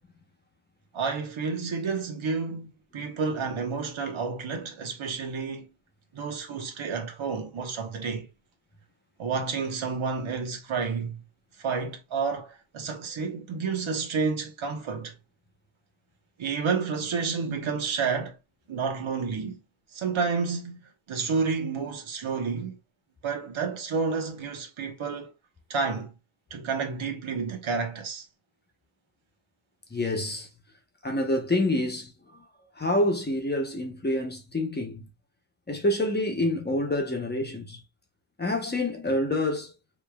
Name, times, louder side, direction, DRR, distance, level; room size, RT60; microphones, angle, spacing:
voice 1, 0.9-5.7 6.1-8.3 9.2-11.2 11.6-15.1 16.4-18.4 18.7-19.6 19.9-22.8 23.2-25.3 25.7-26.1 26.5-28.2, right 5 dB, 85° right, 1.3 m, -30 dB
voice 2, 29.9-30.5 31.0-32.4 32.8-35.1 35.7-37.8 38.4-39.7, left 1 dB, 20° left, 0.9 m, -27 dB
5.1 x 3.3 x 2.3 m
wide cardioid pair, 160°, 47 cm